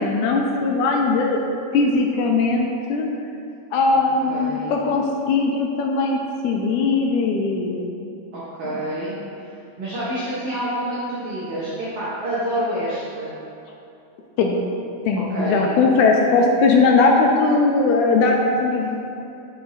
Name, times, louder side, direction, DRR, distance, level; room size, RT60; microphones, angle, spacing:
voice 1, 0.0-1.4 1.7-3.1 3.7-6.2 6.4-7.9 8.6-8.7 14.4-14.6 15.1-18.9, left 3 dB, 80° left, 1 dB, 1.9 m, -19 dB
voice 2, 4.3-4.8 8.3-9.2 9.8-13.3 15.3-15.7, right 1 dB, 60° right, -9 dB, 1.7 m, -27 dB
11.5 x 4.7 x 2.7 m, 2.8 s
omnidirectional pair, 3.8 m